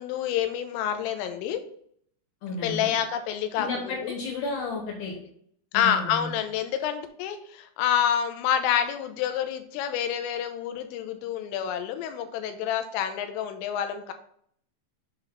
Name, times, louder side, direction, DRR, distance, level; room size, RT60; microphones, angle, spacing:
voice 1, 0.0-1.6 2.5-4.1 5.7-14.1, left 9 dB, 85° left, 8 dB, 3.4 m, -28 dB
voice 2, 2.4-2.9 3.6-5.1 5.7-6.3, left 3 dB, 60° left, -2 dB, 3.3 m, -32 dB
7.7 x 4.1 x 5.6 m, 0.65 s
omnidirectional pair, 5.8 m